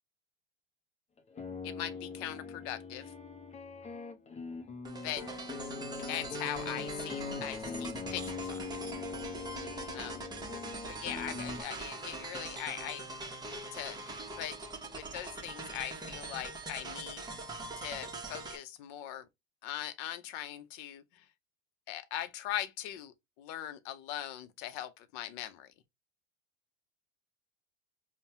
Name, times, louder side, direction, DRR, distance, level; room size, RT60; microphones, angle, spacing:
sound 1, 1.2-11.6, left 4 dB, 20° left, 0.9 m, -41 dB
voice 1, 1.6-3.1 5.0-5.2 6.1-8.6 9.9-10.2 10.9-13.1 13.7-14.6 14.9-17.2 17.8-19.3 19.6-21.2 21.9-25.7, left 12 dB, 60° left, 0.8 m, -40 dB
sound 2, 4.8-18.6, right 3 dB, 15° right, 1.2 m, -43 dB
5.3 x 2.4 x 2.8 m
hypercardioid pair, 95°, 31 cm